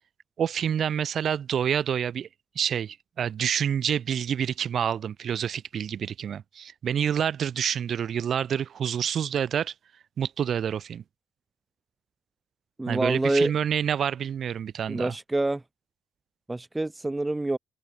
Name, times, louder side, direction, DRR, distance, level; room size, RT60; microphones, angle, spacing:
voice 1, 0.4-2.3 2.5-9.7 10.2-11.0 12.9-15.1, right 8 dB, 60° right, 1.3 m, -28 dB
voice 2, 12.8-13.5 14.9-15.6 16.5-17.6, right 2 dB, 15° right, 0.3 m, -26 dB
open air
cardioid pair, 90°, 0 cm